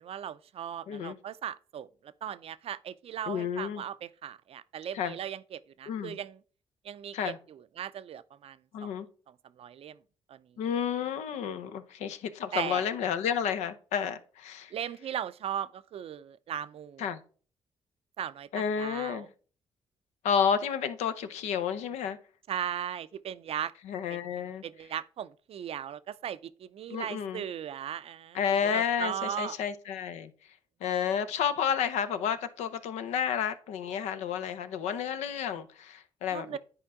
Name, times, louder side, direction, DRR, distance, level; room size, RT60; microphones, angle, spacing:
voice 1, 0.0-1.9 2.2-6.4 6.8-8.9 9.6-10.0 10.3-10.4 12.5-12.9 14.7-17.2 18.2-19.3 22.5-23.7 24.1-24.2 24.6-29.6 36.3-36.6, right 9 dB, 60° right, 0.5 m, -38 dB
voice 2, 0.9-1.2 3.3-3.8 4.9-5.2 5.9-6.2 7.1-7.4 8.7-9.1 10.6-14.7 17.0-17.2 18.5-19.3 20.2-22.2 23.8-24.6 26.9-27.4 28.3-30.3 30.8-36.6, left 7 dB, 85° left, 0.7 m, -31 dB
10.0 x 4.4 x 3.6 m
supercardioid pair, 70°, 11 cm